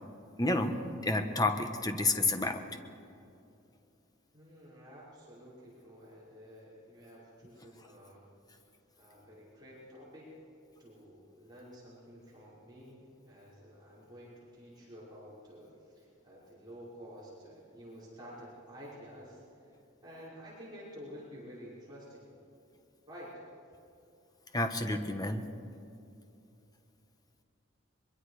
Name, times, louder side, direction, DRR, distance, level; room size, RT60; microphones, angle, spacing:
voice 1, 0.4-2.6 24.5-25.4, left 2 dB, 20° left, 6 dB, 1.2 m, -30 dB
voice 2, 4.3-8.2 9.0-10.3 10.8-19.7 20.0-22.3 23.1-23.4, equal, 20° right, -8 dB, 5.6 m, -51 dB
23.0 x 23.0 x 5.0 m, 2.7 s
head